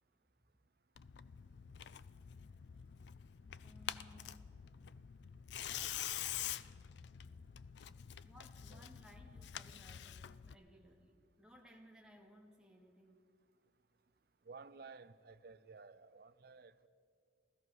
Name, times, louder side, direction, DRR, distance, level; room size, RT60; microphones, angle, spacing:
Tearing, 1.0-10.6, left 10 dB, 70° left, 0.4 m, -47 dB
voice 1, 3.6-4.5 8.1-13.2, equal, 5° right, 1.8 m, -62 dB
voice 2, 14.5-16.9, right 4 dB, 55° right, 0.5 m, -55 dB
16.0 x 14.0 x 6.4 m
head